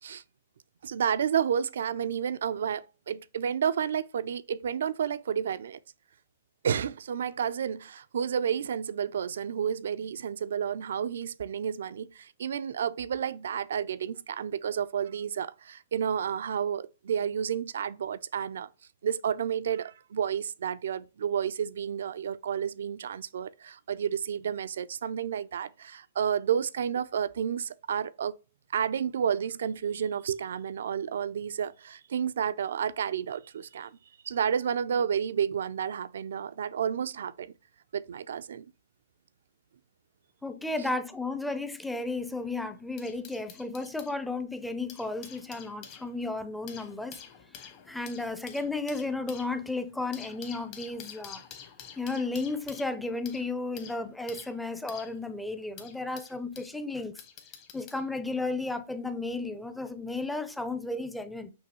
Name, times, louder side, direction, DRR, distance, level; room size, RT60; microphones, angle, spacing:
voice 1, 0.8-5.8 6.6-18.7 19.0-28.4 28.7-34.0 34.2-37.5 37.9-38.7, right 8 dB, 75° right, 0.3 m, -31 dB
voice 2, 40.4-47.2 47.6-51.4 52.0-57.1 57.7-61.5, left 3 dB, 5° left, 0.5 m, -33 dB
sound 1, 42.0-44.1 44.7-56.7 57.2-58.1 58.9-59.1, left 8 dB, 40° left, 1.0 m, -49 dB
6.1 x 2.7 x 2.9 m
hypercardioid pair, 135°, 0 cm